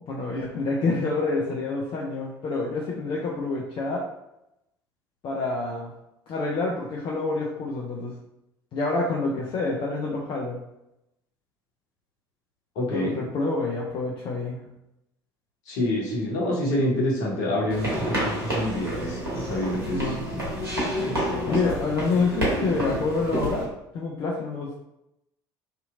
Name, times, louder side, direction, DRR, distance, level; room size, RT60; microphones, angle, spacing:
voice 1, 0.1-4.1 5.2-5.9 6.3-8.1 8.7-10.6 12.9-14.6 19.9-20.3 21.5-23.7 23.9-24.8, left 3 dB, 40° left, -2 dB, 0.5 m, -27 dB
voice 2, 12.8-13.2 15.7-20.0 21.0-21.7, left 1 dB, 60° left, -3 dB, 1.0 m, -27 dB
sound 1, 17.7-23.6, equal, 80° right, 0.9 m, -29 dB
2.8 x 2.6 x 2.4 m, 0.86 s
figure-of-eight pair, 60°, 12 cm